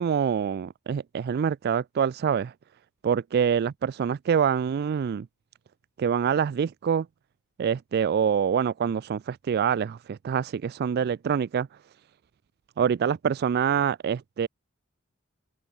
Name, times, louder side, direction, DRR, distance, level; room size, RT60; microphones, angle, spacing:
voice 1, 0.0-2.5 3.0-5.3 6.0-7.1 7.6-11.7 12.8-14.5, right 7 dB, 50° right, 0.3 m, -25 dB
open air
head